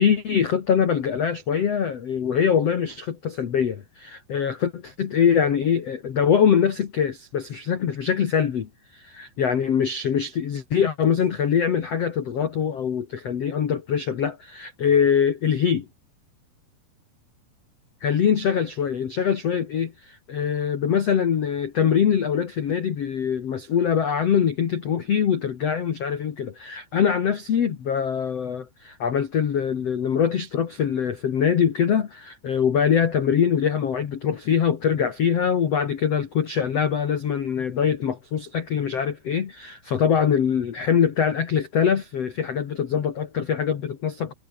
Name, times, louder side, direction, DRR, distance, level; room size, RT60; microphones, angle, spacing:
voice 1, 0.0-15.8 18.0-44.3, left 7 dB, 75° left, 1.4 m, -23 dB
omnidirectional pair, 5.6 m